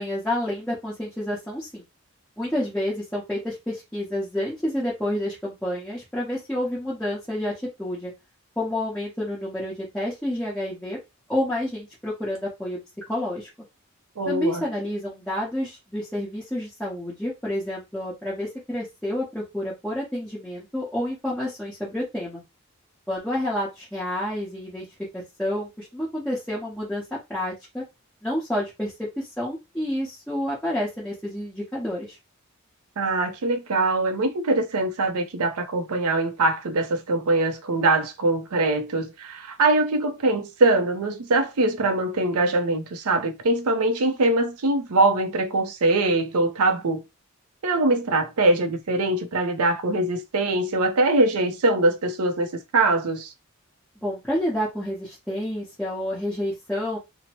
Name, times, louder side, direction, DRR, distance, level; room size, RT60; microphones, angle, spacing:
voice 1, 0.0-1.8 2.4-8.1 8.6-11.0 11.3-12.8 13.1-13.5 14.3-22.4 23.1-24.9 25.1-27.0 27.3-27.8 28.2-32.2 54.0-57.0, left 1 dB, 5° left, 0.8 m, -29 dB
voice 2, 14.2-14.6 33.0-47.0 47.6-53.3, right 2 dB, 90° right, 0.6 m, -23 dB
2.8 x 2.0 x 2.9 m
head